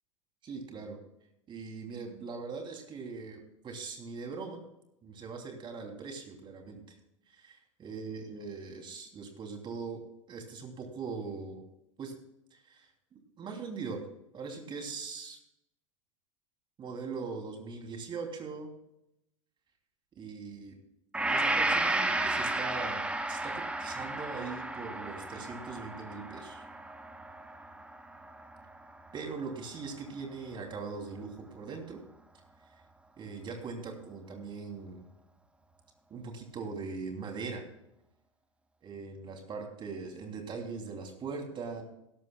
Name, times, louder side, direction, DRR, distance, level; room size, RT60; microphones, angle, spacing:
voice 1, 0.4-1.0 1.5-4.6 5.0-6.8 7.3-10.0 10.3-11.6 12.0-12.1 12.5-14.0 14.3-15.4 16.8-18.7 20.2-20.8 21.2-26.6 29.1-32.0 33.2-35.0 36.1-37.6 38.8-41.8, right 4 dB, 30° right, 3 dB, 3.2 m, -41 dB
Gong, 21.1-29.2, right 2 dB, 5° right, 1.2 m, -33 dB
17.0 x 12.5 x 2.4 m, 0.82 s
figure-of-eight pair, 85°, 17 cm